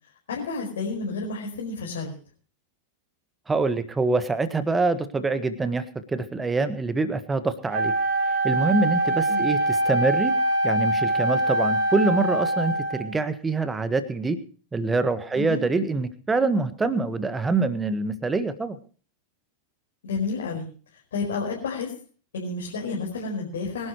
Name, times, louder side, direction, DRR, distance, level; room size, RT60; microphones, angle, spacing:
voice 1, 0.3-2.1 9.3-9.5 15.3-15.6 20.0-20.7 21.1-21.9 22.3-23.9, left 4 dB, 60° left, -2 dB, 4.9 m, -30 dB
voice 2, 3.5-5.8 6.1-7.9 8.4-10.3 10.6-14.4 14.7-18.8, right 3 dB, 10° right, 12 dB, 1.6 m, -25 dB
Wind instrument woodwind instrument, 7.7-13.2, right 1 dB, 45° right, 2.8 m, -24 dB
24.5 x 12.0 x 3.1 m, 0.40 s
figure-of-eight pair, 90°, 0 cm